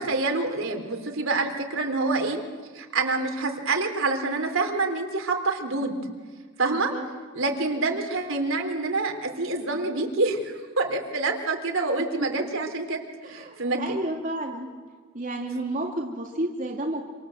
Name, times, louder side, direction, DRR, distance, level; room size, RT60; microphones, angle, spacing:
voice 1, 0.0-2.4 2.7-6.0 6.6-6.9 7.3-13.0 13.3-14.0, right 3 dB, 70° right, 4 dB, 3.8 m, -27 dB
voice 2, 6.7-7.1 12.2-12.3 13.2-14.7 15.1-17.0, right 1 dB, 40° right, 0 dB, 2.5 m, -31 dB
27.5 x 27.0 x 7.9 m, 1.5 s
head